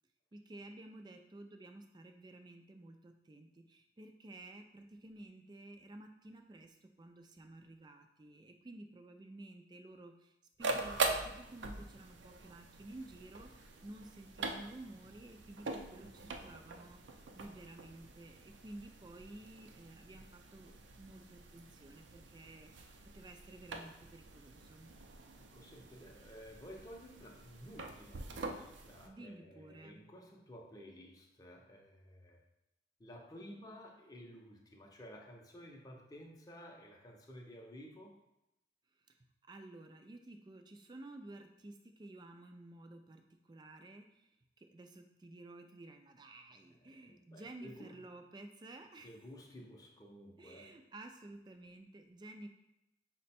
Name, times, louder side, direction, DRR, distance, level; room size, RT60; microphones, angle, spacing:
voice 1, 0.3-22.7 23.1-24.9 29.0-30.0 39.0-39.2 39.4-49.2 50.4-52.5, right 2 dB, 25° right, 6 dB, 0.3 m, -53 dB
sound 1, 10.6-29.1, right 3 dB, 85° right, 0.5 m, -44 dB
voice 2, 25.4-32.4 33.0-38.2 46.8-47.9 49.0-50.8, equal, 20° left, 0 dB, 0.6 m, -53 dB
5.9 x 2.2 x 4.2 m, 0.89 s
head